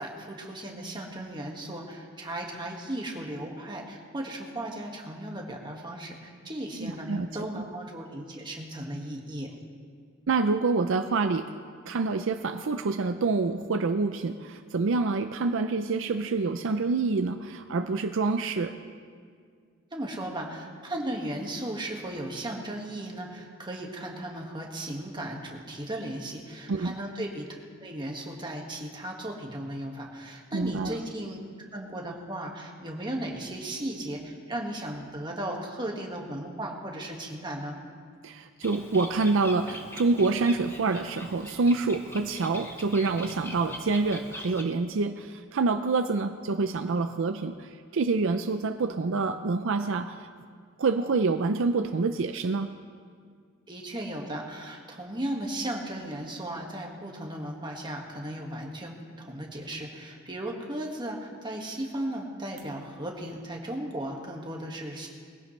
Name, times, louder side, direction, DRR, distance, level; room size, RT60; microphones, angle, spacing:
voice 1, 0.0-7.1 7.3-9.5 19.9-27.5 27.8-31.4 31.7-37.8 53.7-65.1, right 1 dB, 25° right, 0 dB, 1.8 m, -36 dB
voice 2, 6.7-7.3 7.5-7.6 10.3-11.5 11.9-18.7 26.7-26.9 30.5-30.9 38.2-50.3 50.8-52.7, right 3 dB, 65° right, 8 dB, 0.5 m, -27 dB
Bird, 38.6-44.6, left 1 dB, 10° left, 1.1 m, -43 dB
21.0 x 16.0 x 3.3 m, 2.1 s
head